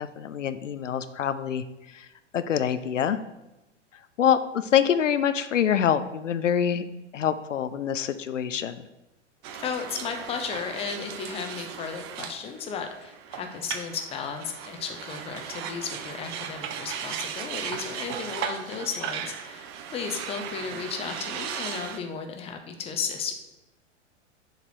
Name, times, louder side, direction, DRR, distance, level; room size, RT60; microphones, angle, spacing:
voice 1, 0.0-1.6 1.9-2.1 2.3-3.2 4.2-6.9 7.1-8.8, left 8 dB, 80° left, 12 dB, 0.5 m, -25 dB
sound 1, 9.4-22.0, right 8 dB, 25° right, 0.3 m, -37 dB
voice 2, 9.5-23.3, left 6 dB, 15° left, 5 dB, 0.7 m, -34 dB
6.7 x 4.0 x 4.6 m, 0.98 s
figure-of-eight pair, 100°, 37 cm